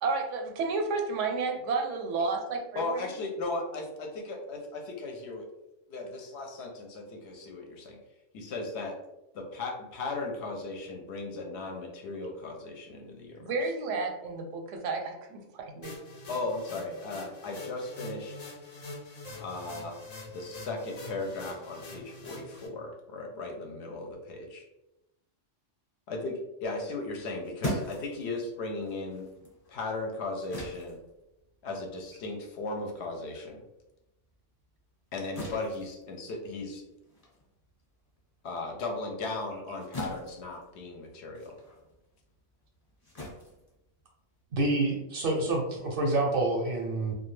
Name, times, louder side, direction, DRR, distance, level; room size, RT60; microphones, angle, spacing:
voice 1, 0.0-2.9 13.4-15.9, right 4 dB, 80° right, 3 dB, 0.9 m, -31 dB
voice 2, 2.8-5.5 5.9-8.0 8.3-9.0 9.3-13.5 16.3-18.5 19.3-19.9 20.3-24.7 26.1-29.3 29.7-31.0 31.6-33.6 35.1-36.8 38.4-41.6, left 2 dB, 70° left, 2 dB, 0.8 m, -37 dB
sound 1, 15.8-22.7, left 2 dB, 55° left, 0.4 m, -45 dB
sound 2, 27.1-33.9 34.2-44.5, equal, 35° left, 0.9 m, -42 dB
voice 3, 44.5-47.1, right 2 dB, 60° right, 0 dB, 0.6 m, -27 dB
2.3 x 2.2 x 3.1 m, 0.92 s
omnidirectional pair, 1.2 m